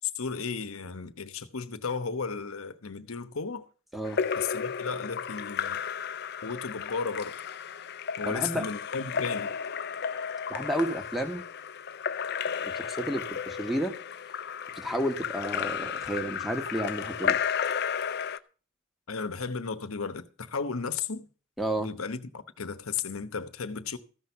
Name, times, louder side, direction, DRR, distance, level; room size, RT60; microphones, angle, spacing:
voice 1, 0.1-3.7 4.3-5.8 6.4-7.4 8.2-9.6 19.1-21.3 21.8-24.0, left 5 dB, 80° left, 1.0 m, -34 dB
Splash splatter / Drip / Trickle dribble, 4.1-18.4, left 7 dB, 50° left, 0.6 m, -33 dB
voice 2, 8.2-8.6 10.5-11.4 12.6-13.9 14.7-17.4 21.6-21.9, right 1 dB, ahead, 1.2 m, -31 dB
14.5 x 6.1 x 6.9 m
head